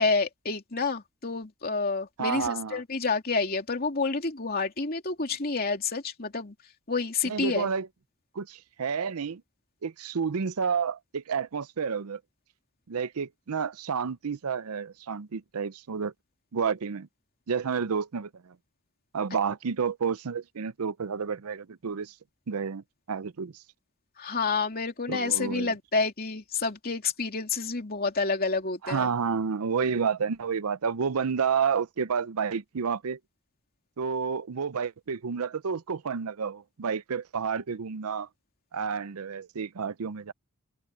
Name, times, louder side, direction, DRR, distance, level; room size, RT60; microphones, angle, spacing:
voice 1, 0.0-6.5 6.9-7.7 24.2-29.1, left 4 dB, 45° left, 2.8 m, -29 dB
voice 2, 2.2-2.8 7.2-7.9 8.4-9.4 9.8-12.2 12.9-16.1 16.5-17.1 17.5-18.3 19.1-22.1 22.5-23.5 25.1-25.7 28.8-33.2 34.0-38.3 38.7-40.3, right 6 dB, 80° right, 0.6 m, -30 dB
open air
head